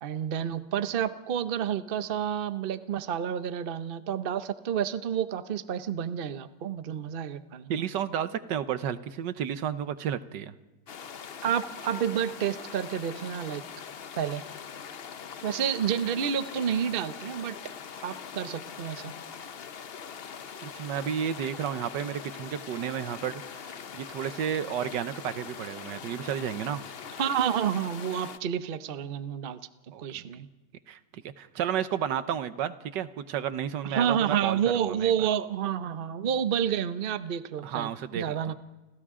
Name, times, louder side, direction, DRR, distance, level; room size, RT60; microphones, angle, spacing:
voice 1, 0.0-7.9 11.4-13.6 14.2-14.4 15.4-17.6 18.0-19.2 27.2-29.6 30.0-30.5 33.8-37.9 38.1-38.5, right 9 dB, 45° right, 11 dB, 0.7 m, -29 dB
voice 2, 7.7-10.5 20.6-26.8 29.9-30.0 30.9-34.6 35.0-35.3 37.6-38.5, right 9 dB, 80° right, 12 dB, 1.5 m, -32 dB
sound 1, 10.9-28.4, left 7 dB, 50° left, 0.7 m, -42 dB
30.0 x 26.0 x 3.7 m, 1.2 s
omnidirectional pair, 1.9 m